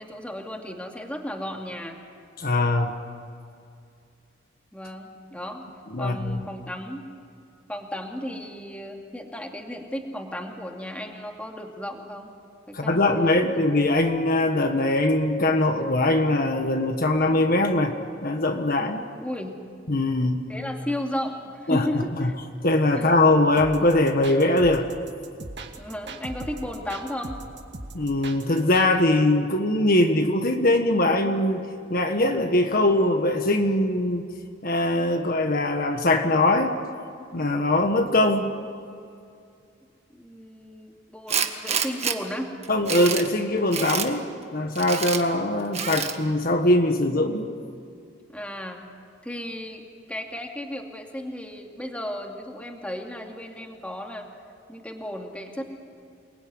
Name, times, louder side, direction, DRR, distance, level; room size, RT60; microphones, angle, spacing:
voice 1, 0.0-2.0 4.7-5.7 6.0-7.0 7.7-12.3 12.7-13.5 19.2-19.6 20.5-22.4 23.0-23.1 25.8-27.4 40.1-42.5 48.3-48.9 49.2-49.8 50.1-54.3 54.7-55.6, equal, 5° left, 2 dB, 2.5 m, -34 dB
voice 2, 2.4-2.9 5.9-6.4 12.7-17.9 18.2-19.1 19.9-20.5 21.7-21.9 22.2-22.3 22.6-24.9 27.9-34.2 34.6-36.7 37.3-38.5 42.7-44.3 44.5-47.5, left 1 dB, 50° left, 5 dB, 1.6 m, -22 dB
sound 1, 23.6-28.9, right 2 dB, 60° right, 2.2 m, -39 dB
Tools, 41.3-42.2 42.6-43.3 43.7-44.1 44.8-45.2 45.7-46.2, right 7 dB, 35° right, 1.7 m, -27 dB
29.0 x 20.5 x 9.7 m, 2.4 s
head